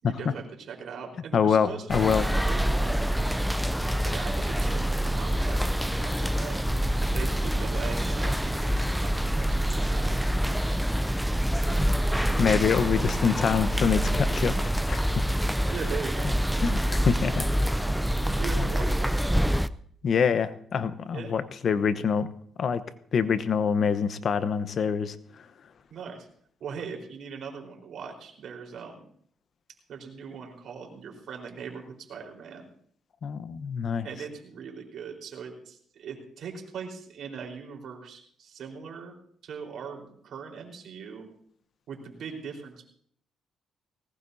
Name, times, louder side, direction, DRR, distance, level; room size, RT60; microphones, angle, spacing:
voice 1, 0.0-3.1 4.0-6.7 7.0-10.2 15.7-16.4 18.3-19.5 21.1-21.3 25.9-26.3 26.6-29.1 29.9-32.7 34.0-39.1 39.4-41.3 41.9-42.9, right 6 dB, 65° right, 2 dB, 4.3 m, -40 dB
voice 2, 1.3-2.3 12.4-15.1 16.6-17.5 20.0-22.3 22.6-22.8 23.1-25.2 33.2-34.1, left 6 dB, 55° left, 12 dB, 1.0 m, -25 dB
sound 1, 1.9-19.7, equal, ahead, 0.5 m, -26 dB
19.5 x 18.5 x 2.8 m, 0.62 s
cardioid pair, 90°, 0 cm